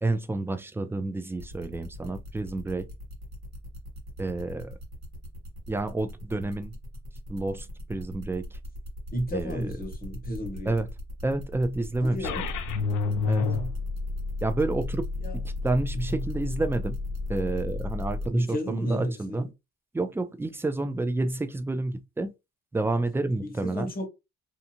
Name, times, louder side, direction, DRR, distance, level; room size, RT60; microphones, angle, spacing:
voice 1, 0.0-2.9 4.2-4.7 5.7-6.7 7.3-8.5 9.3-9.7 10.7-10.9 11.2-12.3 13.2-13.4 14.4-15.1 15.3-17.0 17.3-19.5 19.9-22.3 22.7-23.9, right 2 dB, 10° right, 0.3 m, -29 dB
sound 1, 1.4-18.3, left 1 dB, 60° right, 1.6 m, -42 dB
voice 2, 9.1-10.8 12.0-12.5 13.3-13.7 15.2-15.4 15.9-16.3 18.3-19.5 23.4-24.1, equal, 30° left, 1.1 m, -33 dB
sound 2, 12.2-18.3, left 4 dB, 85° left, 0.5 m, -31 dB
2.6 x 2.5 x 2.7 m
cardioid pair, 90°, 30 cm